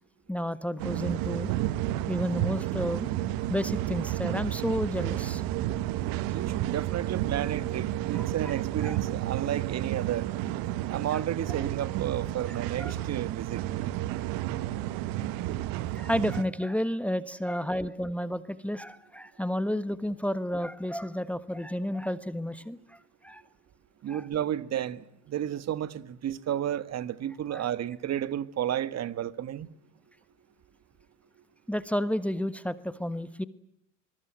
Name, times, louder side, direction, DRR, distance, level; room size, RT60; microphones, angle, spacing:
voice 1, 0.3-1.5 2.1-3.1 3.5-5.4 8.1-9.0 11.1-11.2 12.5-12.9 15.9-23.0 23.2-23.4 24.1-24.3 27.5-27.7 31.7-33.4, equal, 5° left, 1.4 m, -31 dB
sound 1, 0.8-16.4, right 14 dB, 60° right, 1.5 m, -31 dB
voice 2, 6.3-10.3 10.9-13.6 24.0-29.7, right 11 dB, 40° right, 1.7 m, -32 dB
24.5 x 21.5 x 9.2 m
hypercardioid pair, 75°, 39 cm